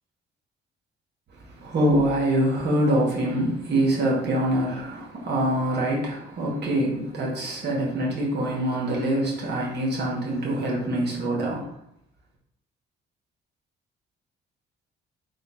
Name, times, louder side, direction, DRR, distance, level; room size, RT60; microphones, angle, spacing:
voice 1, 1.6-11.7, right 1 dB, 60° right, -3 dB, 1.1 m, -24 dB
3.7 x 2.2 x 4.1 m, 0.76 s
cardioid pair, 90°, 20 cm